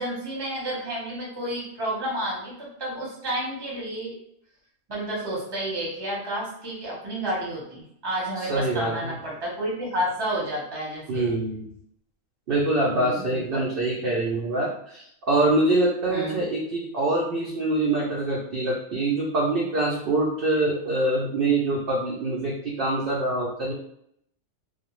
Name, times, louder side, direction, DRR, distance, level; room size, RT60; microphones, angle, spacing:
voice 1, 0.0-4.1 4.9-11.2 12.9-13.6 16.1-16.4, right 1 dB, 25° right, -5 dB, 0.7 m, -31 dB
voice 2, 8.4-9.1 11.1-11.7 12.5-23.7, right 2 dB, 65° right, -3 dB, 0.5 m, -25 dB
2.3 x 2.0 x 3.0 m, 0.73 s
omnidirectional pair, 1.4 m